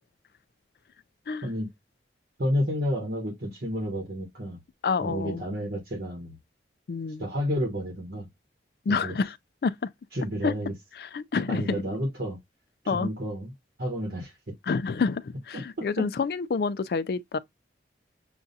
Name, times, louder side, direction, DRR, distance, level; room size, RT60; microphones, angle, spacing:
voice 1, 2.4-4.6 5.0-6.4 7.2-8.3 8.9-9.2 10.1-10.7 11.5-12.4 12.8-13.5 13.8-14.4 15.5-16.1, equal, 70° right, 1.2 m, -30 dB
voice 2, 4.8-5.4 6.9-7.3 8.9-9.4 9.6-9.7 10.4-10.5 11.0-11.8 12.9-13.1 14.6-17.4, left 4 dB, 60° left, 0.3 m, -28 dB
6.9 x 2.4 x 2.6 m
head